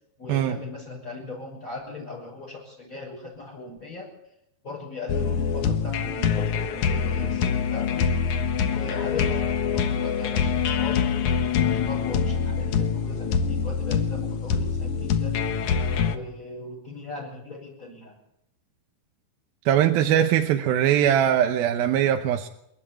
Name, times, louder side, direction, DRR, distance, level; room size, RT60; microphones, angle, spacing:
voice 1, 0.2-4.1 4.6-8.1 8.6-11.0 11.5-15.4 16.1-18.1, left 3 dB, 20° left, -4 dB, 6.6 m, -38 dB
sound 1, 5.1-16.1, left 6 dB, 60° left, 2.3 m, -25 dB
voice 2, 19.7-22.5, right 10 dB, 75° right, 5 dB, 2.7 m, -21 dB
28.5 x 12.0 x 8.7 m, 0.80 s
omnidirectional pair, 4.5 m